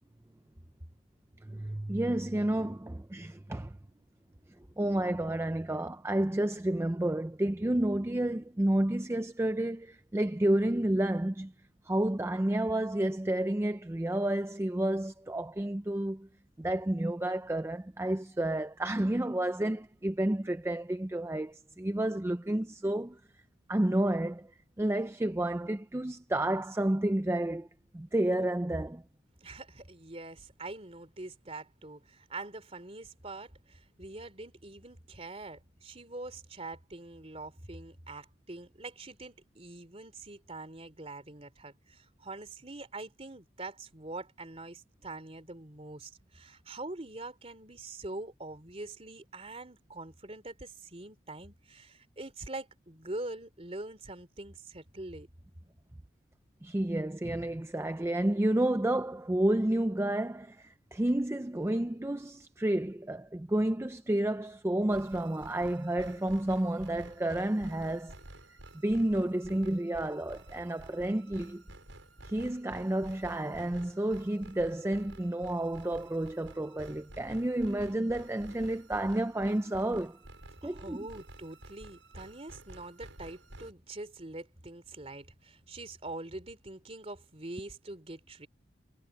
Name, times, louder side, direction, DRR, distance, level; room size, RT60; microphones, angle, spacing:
voice 1, 1.4-3.8 4.8-11.5 11.8-16.3 16.6-23.2 23.7-24.5 24.8-27.7 27.9-29.0 56.6-68.1 68.8-71.6 72.2-80.2 80.6-81.1, right 1 dB, 15° right, 0.4 m, -30 dB
voice 2, 29.4-55.3 80.6-88.5, right 2 dB, 30° right, 3.2 m, -44 dB
sound 1, 64.9-83.7, right 1 dB, 85° right, 6.4 m, -51 dB
head